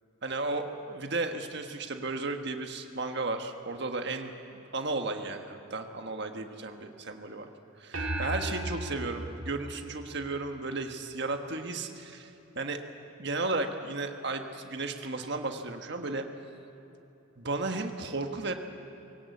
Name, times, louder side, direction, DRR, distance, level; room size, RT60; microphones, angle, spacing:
voice 1, 0.2-4.3 4.7-7.5 7.8-12.3 12.5-12.8 13.2-16.2 17.4-18.6, right 3 dB, 55° right, 5 dB, 1.5 m, -34 dB
sound 1, 7.9-10.6, right 1 dB, 70° right, 2.9 m, -36 dB
21.0 x 18.0 x 8.4 m, 3.0 s
head